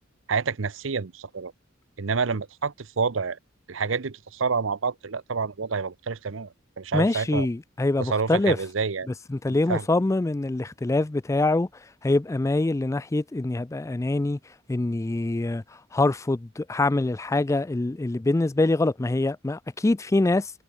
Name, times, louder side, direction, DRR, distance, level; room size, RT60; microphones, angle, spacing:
voice 1, 0.3-1.5 2.0-3.4 3.7-6.5 6.8-7.5 8.0-9.1 9.5-9.8, right 5 dB, 70° right, 0.8 m, -28 dB
voice 2, 6.9-8.6 9.3-11.7 12.0-14.4 14.7-15.6 15.9-20.5, left 2 dB, 15° left, 0.3 m, -24 dB
head